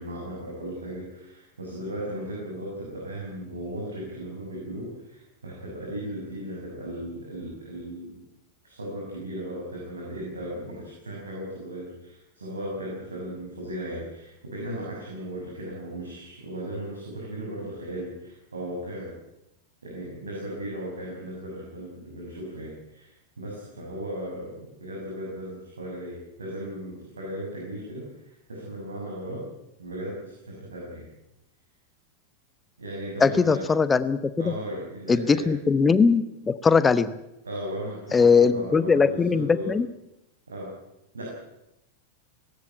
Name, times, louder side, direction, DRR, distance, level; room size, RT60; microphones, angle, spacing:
voice 1, 0.0-8.2 8.6-19.1 19.8-29.4 29.8-31.1 32.8-33.6 34.4-35.5 37.4-39.7 40.5-40.7 41.1-41.3, right 1 dB, 75° right, -3 dB, 6.6 m, -36 dB
voice 2, 33.2-34.2 34.5-34.6 35.1-37.2 38.1-39.9, left 5 dB, 15° left, 15 dB, 1.1 m, -20 dB
19.0 x 17.0 x 9.0 m, 0.90 s
figure-of-eight pair, 90°, 0 cm